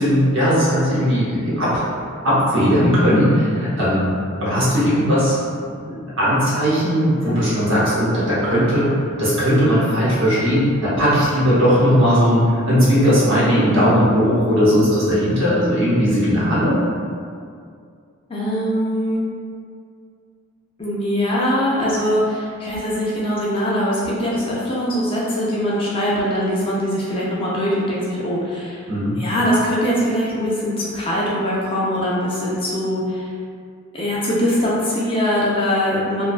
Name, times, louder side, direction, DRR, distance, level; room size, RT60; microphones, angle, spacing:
voice 1, 0.0-1.8 2.2-5.4 5.9-16.8 28.9-29.2, equal, 55° right, -9 dB, 0.9 m, -18 dB
voice 2, 18.3-19.2 20.8-28.9 29.2-33.3 33.9-36.3, equal, 25° left, -6 dB, 0.3 m, -22 dB
2.5 x 2.2 x 2.4 m, 2.3 s
head